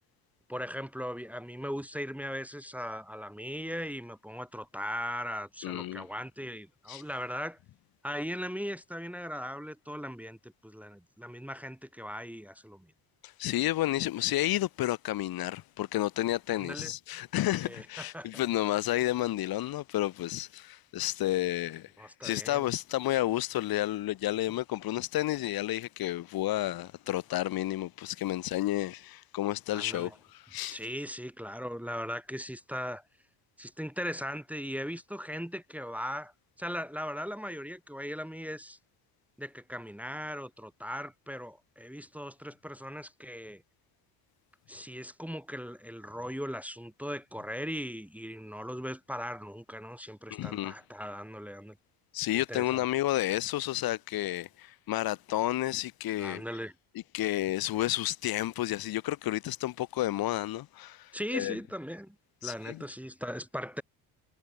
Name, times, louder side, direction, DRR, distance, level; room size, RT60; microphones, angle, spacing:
voice 1, 0.5-7.6 8.0-12.9 16.6-16.9 17.7-18.4 22.0-22.6 29.7-30.2 30.7-33.0 33.6-36.3 36.6-38.8 39.4-43.6 44.7-51.8 52.3-52.9 56.2-56.7 61.1-62.1 62.4-63.8, equal, 5° right, 1.3 m, -39 dB
voice 2, 5.6-6.1 6.9-7.0 13.2-30.1 30.5-30.8 50.3-50.7 52.1-56.4 57.1-61.6 62.4-62.8, left 15 dB, 50° left, 1.0 m, -31 dB
hypercardioid pair, 60°, 46 cm